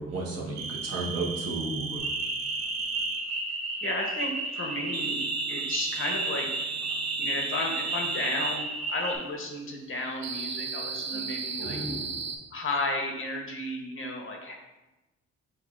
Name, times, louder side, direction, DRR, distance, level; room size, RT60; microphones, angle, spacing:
voice 1, 0.0-2.0 11.1-11.2 11.6-12.1, right 2 dB, 50° right, -4 dB, 1.1 m, -33 dB
sound 1, 0.6-3.3 4.9-8.7 10.2-12.4, right 6 dB, 65° right, 0.6 m, -35 dB
sound 2, 2.0-9.1, right 2 dB, 85° right, 1.3 m, -33 dB
voice 2, 3.8-5.2 5.5-6.5 7.2-11.8 12.5-14.5, left 2 dB, 45° left, 1 dB, 0.8 m, -33 dB
6.1 x 2.5 x 2.4 m, 1.1 s
cardioid pair, 90°, 30 cm